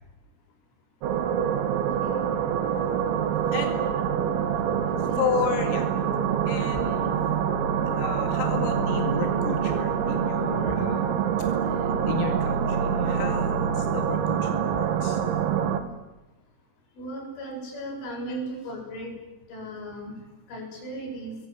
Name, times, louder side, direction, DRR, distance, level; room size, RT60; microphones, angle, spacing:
sound 1, 1.0-15.8, right 8 dB, 70° right, 4.0 m, -25 dB
voice 1, 1.7-2.3 4.2-4.4 5.0-5.3 17.0-19.2 19.5-20.2 20.5-21.4, right 1 dB, 65° left, 0 dB, 10.5 m, -37 dB
voice 2, 3.5-3.8 5.2-5.9 6.5-7.2 7.9-11.1 11.5-15.2 18.3-18.4, left 7 dB, 80° left, 4 dB, 4.8 m, -33 dB
28.5 x 22.0 x 9.3 m, 1.0 s
omnidirectional pair, 6.0 m